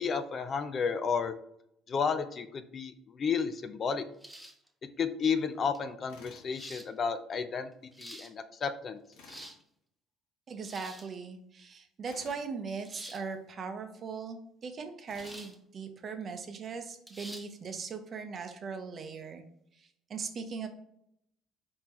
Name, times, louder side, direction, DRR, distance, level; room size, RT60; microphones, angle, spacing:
voice 1, 0.0-1.3 1.9-4.0 5.0-7.7 8.0-9.0, left 6 dB, 40° left, 10 dB, 0.4 m, -32 dB
sound 1, 4.2-4.7 5.7-5.8 6.5-6.9 7.7-8.3 9.1-9.6 10.6-11.1 12.8-13.2 15.1-15.6 16.0-16.1 17.1-17.5, right 1 dB, 5° right, 0.7 m, -47 dB
Tools, 6.1-6.5 9.1-9.5 12.0-12.5 15.1-15.5, left 4 dB, 85° left, 1.0 m, -53 dB
voice 2, 10.5-19.4 19.7-20.7, right 5 dB, 45° right, 6 dB, 0.7 m, -39 dB
4.4 x 3.6 x 3.0 m, 0.74 s
cardioid pair, 100°, 0 cm